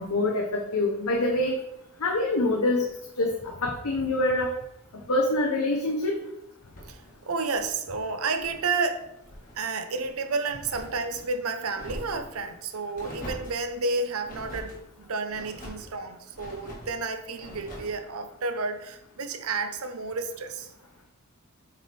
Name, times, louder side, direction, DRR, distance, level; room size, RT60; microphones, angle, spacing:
voice 1, 0.0-1.6 2.0-2.9 3.2-4.5 5.1-6.2, left 2 dB, 80° left, 1 dB, 0.9 m, -25 dB
sound 1, 6.6-8.7 9.0-9.6 9.9-11.3 11.7-12.4 12.9-13.6 14.2-14.8 15.3-15.9 16.3-16.9 17.3-18.0, equal, 40° left, 1.7 m, -43 dB
voice 2, 6.9-9.0 9.5-20.7, right 4 dB, 75° right, 8 dB, 0.7 m, -31 dB
7.8 x 3.5 x 4.3 m, 0.84 s
head